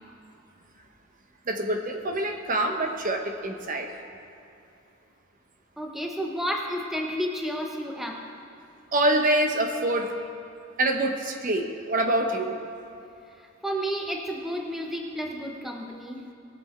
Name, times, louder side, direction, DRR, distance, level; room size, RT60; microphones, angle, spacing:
voice 1, 1.5-3.9 8.9-10.2 10.8-12.6, right 1 dB, 40° right, 4 dB, 0.9 m, -25 dB
voice 2, 5.8-8.2 13.4-16.2, equal, ahead, 1 dB, 0.8 m, -31 dB
20.0 x 7.1 x 4.4 m, 2.7 s
head